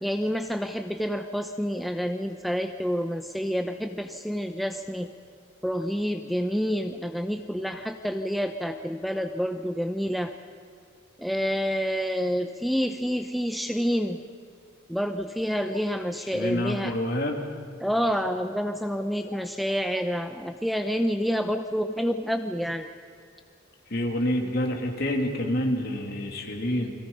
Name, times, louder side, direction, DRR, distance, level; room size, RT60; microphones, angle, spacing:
voice 1, 0.0-5.1 5.6-10.3 11.2-14.2 14.9-16.9 17.8-22.9, equal, ahead, 6 dB, 0.7 m, -28 dB
voice 2, 16.3-17.4 23.9-26.9, left 1 dB, 50° left, 2 dB, 3.0 m, -27 dB
29.0 x 22.0 x 5.6 m, 2.3 s
head